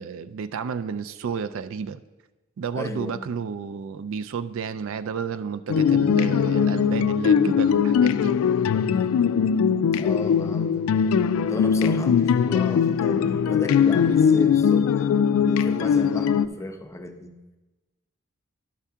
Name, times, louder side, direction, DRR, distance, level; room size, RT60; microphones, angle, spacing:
voice 1, 0.0-2.0 2.6-8.4, right 6 dB, 65° right, 11 dB, 0.4 m, -31 dB
voice 2, 2.7-3.4 9.9-10.9 11.5-14.9 15.4-17.4, left 1 dB, 15° left, 6 dB, 0.5 m, -34 dB
sound 1, 5.7-16.5, left 7 dB, 75° left, 0.3 m, -20 dB
11.5 x 5.6 x 3.6 m, 1.1 s
head